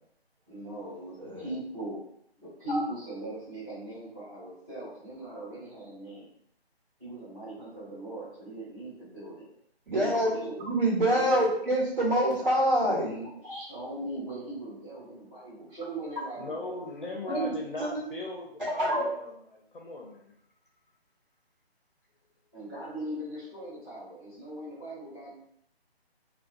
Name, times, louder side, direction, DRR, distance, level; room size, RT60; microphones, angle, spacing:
voice 1, 0.5-2.0 2.4-6.3 7.0-9.5 9.9-10.6 11.1-11.4 12.8-16.8 17.0-17.4 22.5-25.5, right 1 dB, 10° right, -15 dB, 0.8 m, -40 dB
voice 2, 1.2-1.5 2.7-2.8 9.9-10.3 10.7-13.1 17.3-17.5 17.8-17.9 18.6-19.0, right 1 dB, 55° right, -6 dB, 1.3 m, -25 dB
voice 3, 16.4-20.3, left 2 dB, 55° left, -1 dB, 0.5 m, -39 dB
2.2 x 2.2 x 2.5 m, 0.72 s
figure-of-eight pair, 155°, 32 cm